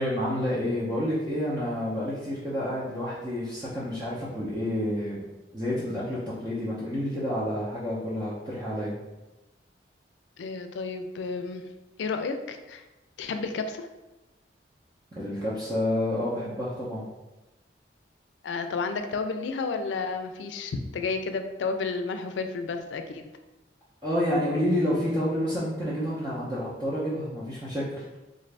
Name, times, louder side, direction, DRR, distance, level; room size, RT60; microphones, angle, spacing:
voice 1, 0.0-5.2 5.5-8.9 15.1-17.0 24.0-27.8, left 1 dB, 20° right, -9 dB, 0.6 m, -29 dB
voice 2, 10.4-11.7 12.0-12.8 13.2-13.9 18.4-23.3, left 4 dB, 85° left, 7 dB, 0.4 m, -31 dB
3.7 x 2.5 x 3.2 m, 1.0 s
head